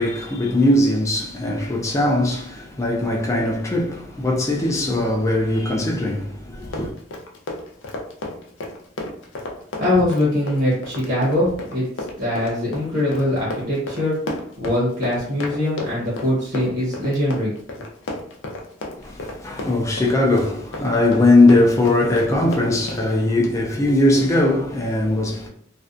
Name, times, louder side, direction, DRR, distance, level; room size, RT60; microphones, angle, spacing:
voice 1, 0.0-6.9 19.0-25.5, left 2 dB, 15° left, 0.3 m, -20 dB
Run, 6.6-23.1, left 2 dB, 90° left, 0.5 m, -32 dB
voice 2, 9.8-11.8 12.2-14.2 14.6-17.5, left 1 dB, 60° right, 0.9 m, -22 dB
2.5 x 2.2 x 2.4 m
head